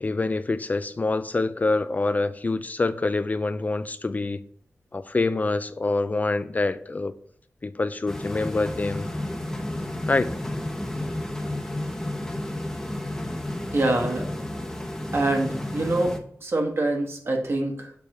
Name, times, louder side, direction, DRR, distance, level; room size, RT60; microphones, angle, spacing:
voice 1, 0.0-4.4 4.9-7.1 7.6-9.1 10.1-10.3, left 3 dB, 30° left, 0.3 m, -26 dB
sound 1, 8.1-16.2, left 1 dB, 10° left, 0.9 m, -32 dB
voice 2, 13.7-14.4 15.1-16.2 16.4-17.9, right 2 dB, 55° right, 1.4 m, -25 dB
6.9 x 3.3 x 5.7 m
wide cardioid pair, 125°, 5 cm